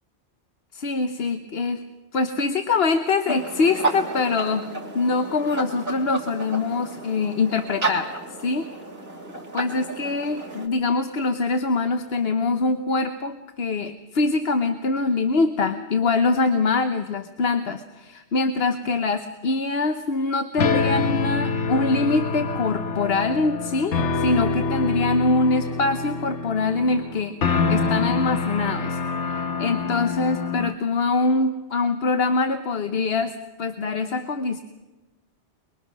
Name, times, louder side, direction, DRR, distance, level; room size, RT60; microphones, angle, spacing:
voice 1, 0.7-1.8 2.1-4.7 4.9-8.1 8.4-8.7 9.5-34.6, left 3 dB, 60° left, 7 dB, 1.2 m, -24 dB
sound 1, 3.3-10.7, right 2 dB, 50° right, 3.0 m, -32 dB
sound 2, 20.6-30.7, left 4 dB, 80° left, 1.4 m, -26 dB
23.0 x 22.5 x 6.2 m, 1.2 s
omnidirectional pair, 1.2 m